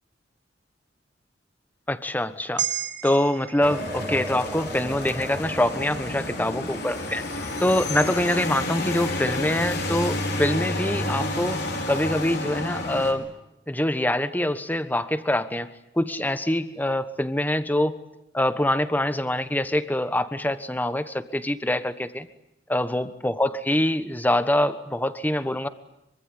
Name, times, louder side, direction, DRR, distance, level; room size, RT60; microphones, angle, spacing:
voice 1, 1.9-2.7 3.0-7.2 7.6-13.3 13.7-15.7 15.9-18.0 18.3-22.3 22.7-25.7, left 1 dB, 10° left, 12 dB, 1.2 m, -25 dB
sound 1, 2.6-7.1 7.5-7.6, right 9 dB, 75° right, 2.9 m, -36 dB
sound 2, 3.6-13.1, left 2 dB, 60° left, 5.3 m, -30 dB
sound 3, 3.6-12.0, right 1 dB, 15° right, 1.6 m, -41 dB
25.0 x 24.5 x 9.8 m, 0.87 s
head